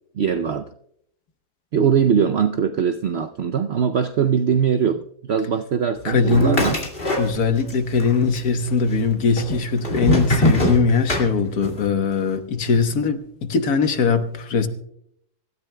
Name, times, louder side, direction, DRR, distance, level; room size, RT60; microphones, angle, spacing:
voice 1, 0.1-0.7 1.7-6.8, right 7 dB, 65° right, 8 dB, 0.6 m, -21 dB
voice 2, 6.0-6.7 7.2-14.7, left 4 dB, 65° left, 8 dB, 1.6 m, -20 dB
sound 1, 6.3-7.7 8.0-8.7 9.4-11.8, left 1 dB, 35° left, 2.5 m, -22 dB
25.0 x 13.5 x 2.2 m, 0.70 s
omnidirectional pair, 1.7 m